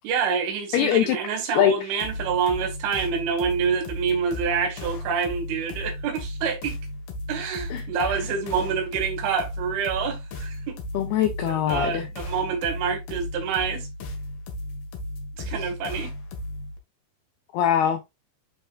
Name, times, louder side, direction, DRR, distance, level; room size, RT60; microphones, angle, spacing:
voice 1, 0.0-6.8 7.3-10.8 11.5-13.9 15.4-16.1, right 6 dB, 80° right, 4.4 m, -27 dB
voice 2, 0.7-1.2 1.6-1.7 7.7-7.8 10.9-12.1 17.5-18.0, left 10 dB, 85° left, 2.2 m, -22 dB
sound 1, 2.0-16.8, left 1 dB, 65° left, 3.0 m, -35 dB
11.5 x 4.4 x 2.4 m
omnidirectional pair, 5.5 m